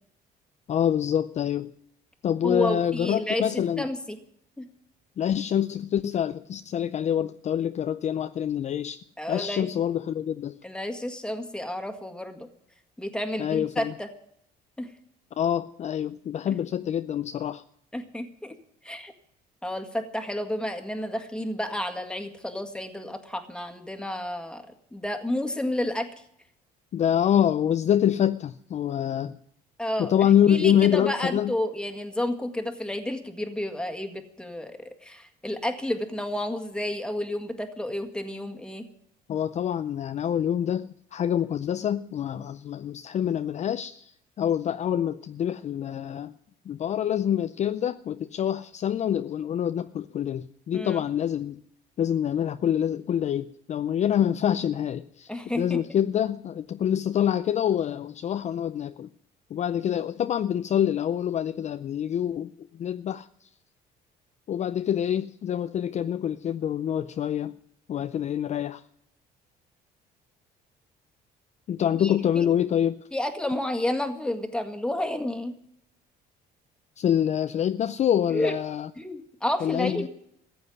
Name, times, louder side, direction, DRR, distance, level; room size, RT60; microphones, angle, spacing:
voice 1, 0.7-1.7 2.2-3.9 5.2-10.6 13.4-13.9 15.4-17.6 26.9-29.3 30.0-31.5 39.3-44.1 44.4-46.3 46.7-51.6 52.0-55.3 55.6-59.1 59.5-62.5 62.8-63.5 64.5-67.6 67.9-68.8 71.7-73.0 77.0-78.9 79.6-80.1, left 9 dB, 45° left, 0.5 m, -26 dB
voice 2, 2.4-4.2 4.6-4.7 9.2-9.7 10.6-12.5 13.0-14.1 14.8-14.9 17.9-18.6 18.8-19.1 19.6-24.7 24.9-26.1 29.8-30.1 30.5-38.9 50.7-51.0 55.3-55.8 72.0-72.5 73.1-75.5 78.3-78.5 79.0-80.1, left 1 dB, 5° left, 1.8 m, -31 dB
15.0 x 7.9 x 9.5 m
cardioid pair, 110°, 17 cm